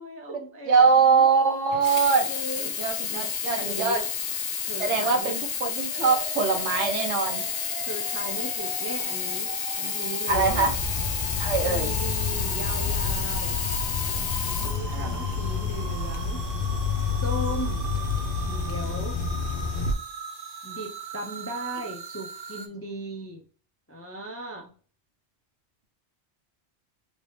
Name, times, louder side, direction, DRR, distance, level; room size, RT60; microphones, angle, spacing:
voice 1, 0.0-1.3 2.2-3.3 3.6-4.1 4.7-5.3 7.8-10.7 11.6-13.6 14.6-16.4 17.2-17.9 18.3-19.2 20.6-23.4 23.9-24.7, right 1 dB, 20° left, 1 dB, 0.4 m, -37 dB
voice 2, 0.7-2.3 2.8-4.0 4.8-7.4 10.3-10.7 11.4-11.9 14.9-15.2, right 5 dB, 80° right, 3 dB, 1.2 m, -23 dB
Sink (filling or washing), 1.7-15.5 16.2-16.3, left 7 dB, 90° left, 1.0 m, -31 dB
sound 1, 5.9-22.7, right 5 dB, 50° right, 0.5 m, -39 dB
sound 2, 10.3-19.9, left 5 dB, 60° left, 0.7 m, -29 dB
3.2 x 2.9 x 3.1 m, 0.41 s
omnidirectional pair, 1.2 m